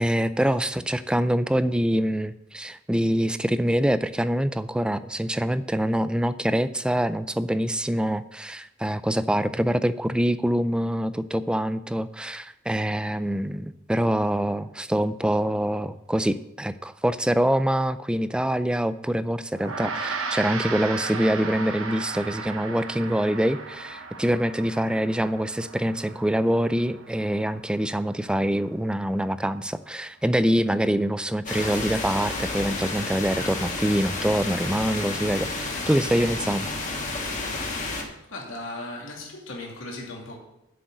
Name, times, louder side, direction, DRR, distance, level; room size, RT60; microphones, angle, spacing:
voice 1, 0.0-36.7, equal, 5° right, 13 dB, 0.3 m, -25 dB
Gong, 19.5-29.2, right 4 dB, 85° right, 1.1 m, -36 dB
sound 1, 31.5-38.0, left 2 dB, 40° left, 1.7 m, -31 dB
voice 2, 38.3-40.4, left 2 dB, 75° left, -1 dB, 2.6 m, -37 dB
7.7 x 6.3 x 7.9 m, 0.86 s
head